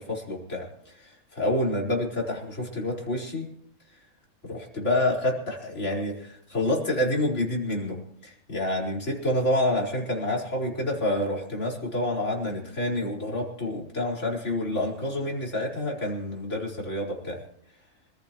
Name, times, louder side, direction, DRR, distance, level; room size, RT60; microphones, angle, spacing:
voice 1, 0.0-3.5 4.4-17.4, left 1 dB, 50° left, -2 dB, 5.0 m, -28 dB
26.5 x 15.0 x 3.1 m, 0.73 s
omnidirectional pair, 1.6 m